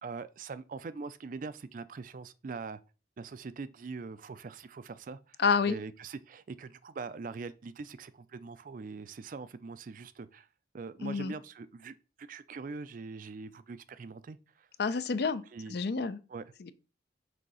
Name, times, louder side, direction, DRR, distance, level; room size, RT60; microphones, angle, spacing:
voice 1, 0.0-2.8 3.2-5.4 5.7-10.5 10.7-14.7 15.5-15.8 16.3-16.4, right 4 dB, 45° right, 0.4 m, -42 dB
voice 2, 5.4-5.8 11.0-11.3 14.8-15.4 15.7-16.2 16.7-16.8, left 5 dB, 55° left, 0.5 m, -28 dB
6.3 x 2.8 x 5.5 m
head